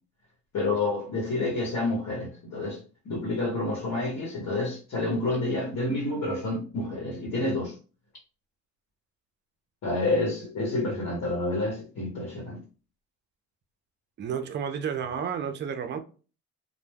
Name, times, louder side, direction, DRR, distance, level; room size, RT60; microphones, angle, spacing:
voice 1, 0.5-7.8 9.8-12.6, left 2 dB, 60° left, 1.0 m, -29 dB
voice 2, 14.2-16.0, right 7 dB, 35° right, 0.4 m, -31 dB
2.1 x 2.1 x 3.3 m
cardioid pair, 90°, 30 cm